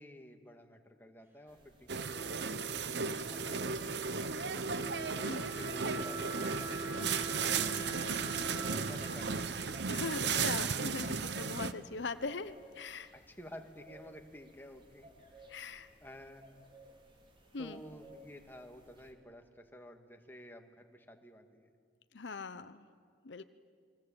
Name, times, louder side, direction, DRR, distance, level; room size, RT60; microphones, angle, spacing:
voice 1, 0.0-2.6 3.3-4.4 5.1-7.2 8.6-9.6 13.1-15.1 16.0-16.5 17.6-21.7, equal, 10° left, 4 dB, 2.0 m, -52 dB
sound 1, 1.5-19.1, right 1 dB, 30° right, 3.7 m, -58 dB
sound 2, 1.9-11.7, right 5 dB, 65° right, 1.0 m, -35 dB
Wind instrument woodwind instrument, 2.1-10.9, right 2 dB, 15° right, 4.7 m, -45 dB
voice 2, 5.1-5.5 7.6-8.7 9.9-13.1 15.5-15.9 17.5-17.8 22.1-22.8 23.2-23.4, left 4 dB, 75° left, 12 dB, 0.8 m, -41 dB
29.0 x 23.0 x 8.8 m, 2.1 s
head